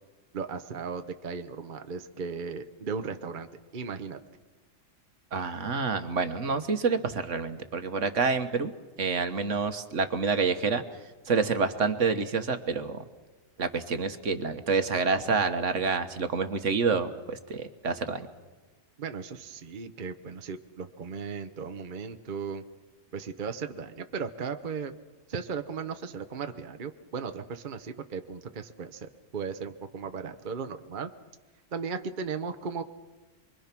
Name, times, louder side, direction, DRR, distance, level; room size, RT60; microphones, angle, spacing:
voice 1, 0.3-4.2 19.0-22.6 23.1-25.0 25.3-31.1 31.7-32.8, right 5 dB, 40° right, 8 dB, 1.0 m, -36 dB
voice 2, 5.3-8.7 9.0-10.8 11.3-13.0 13.6-18.3, right 4 dB, 70° right, 9 dB, 1.6 m, -28 dB
28.5 x 22.5 x 6.0 m, 1.3 s
omnidirectional pair, 1.4 m